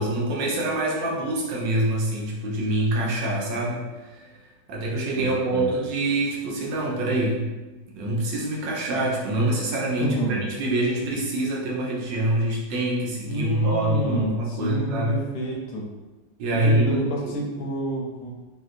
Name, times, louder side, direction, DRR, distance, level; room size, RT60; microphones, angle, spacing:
voice 1, 0.0-4.4 4.7-7.5 7.9-15.2 16.4-17.4, right 1 dB, 90° right, -3 dB, 1.4 m, -25 dB
voice 2, 5.2-5.7 10.0-10.4 13.2-15.9 16.5-18.3, right 1 dB, 75° left, -2 dB, 1.2 m, -29 dB
3.2 x 2.8 x 2.5 m, 1.2 s
omnidirectional pair, 1.9 m